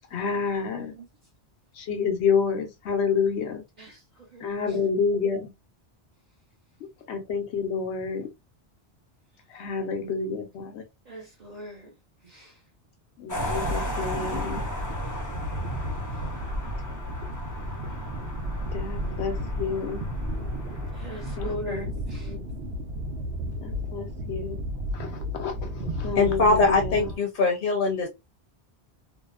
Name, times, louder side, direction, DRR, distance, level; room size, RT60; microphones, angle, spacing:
voice 1, 0.1-0.9 1.8-3.6 4.4-5.5 7.1-8.3 9.5-10.8 13.2-14.7 18.7-20.1 21.4-21.9 22.2-22.4 23.6-24.6 24.9-27.1, left 5 dB, 90° left, 1.0 m, -29 dB
voice 2, 11.1-11.9 12.3-12.5 21.0-22.2, equal, 45° right, 0.8 m, -38 dB
sound 1, 13.3-21.5, left 1 dB, 25° left, 0.5 m, -35 dB
sound 2, 13.4-27.2, equal, 90° right, 0.9 m, -34 dB
voice 3, 26.2-28.1, left 3 dB, 60° left, 0.8 m, -22 dB
2.8 x 2.0 x 2.2 m
omnidirectional pair, 1.1 m